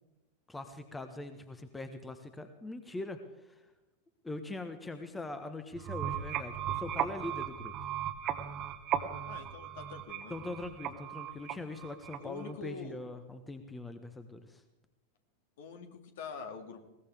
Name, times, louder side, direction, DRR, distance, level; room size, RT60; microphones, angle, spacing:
voice 1, 0.5-3.6 4.2-7.7 10.3-14.6, left 2 dB, 10° left, 8 dB, 1.3 m, -42 dB
sound 1, 5.7-12.5, right 10 dB, 35° right, 1.5 m, -37 dB
voice 2, 9.3-10.4 12.2-13.0 15.6-16.9, left 5 dB, 55° left, 5 dB, 2.3 m, -45 dB
21.0 x 19.0 x 3.6 m, 1.0 s
figure-of-eight pair, 90°, 0 cm